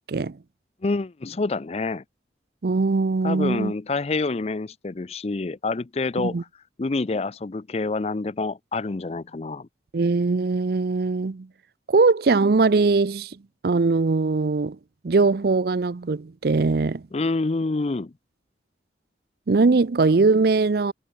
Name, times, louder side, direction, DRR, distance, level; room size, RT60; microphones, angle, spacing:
voice 1, 0.8-2.0 3.2-6.4 6.8-9.7 17.1-18.1, left 3 dB, 35° left, 0.5 m, -27 dB
voice 2, 2.6-3.7 6.2-6.4 9.9-11.5 11.9-13.4 13.6-14.8 15.0-17.0 19.5-20.9, right 3 dB, 60° right, 0.5 m, -21 dB
head